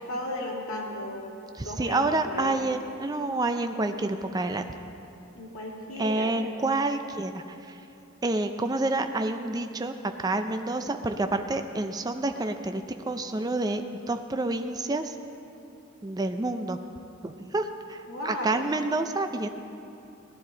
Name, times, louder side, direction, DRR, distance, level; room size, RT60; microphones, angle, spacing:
voice 1, 0.0-1.4 1.6-2.6 5.3-6.4 18.1-18.7, left 1 dB, 75° left, -3 dB, 2.4 m, -35 dB
voice 2, 1.6-4.6 6.0-7.8 8.2-9.9 10.2-13.8 14.1-15.1 16.0-16.8 17.2-19.5, right 2 dB, 20° right, 7 dB, 0.4 m, -28 dB
17.0 x 12.0 x 3.8 m, 2.7 s
head